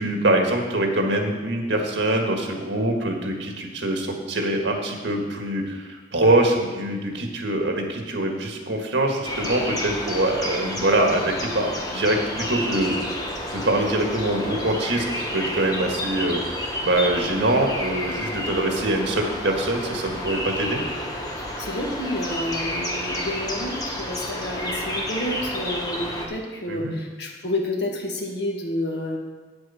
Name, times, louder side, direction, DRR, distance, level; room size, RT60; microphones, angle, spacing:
voice 1, 0.0-12.9 13.5-16.4 16.8-20.8 26.7-27.0, right 1 dB, 85° right, 2 dB, 1.7 m, -24 dB
sound 1, 9.2-26.3, left 1 dB, 20° left, 1.2 m, -30 dB
voice 2, 21.6-29.2, left 1 dB, 65° left, 0 dB, 1.6 m, -29 dB
9.0 x 8.0 x 5.6 m, 1.3 s
head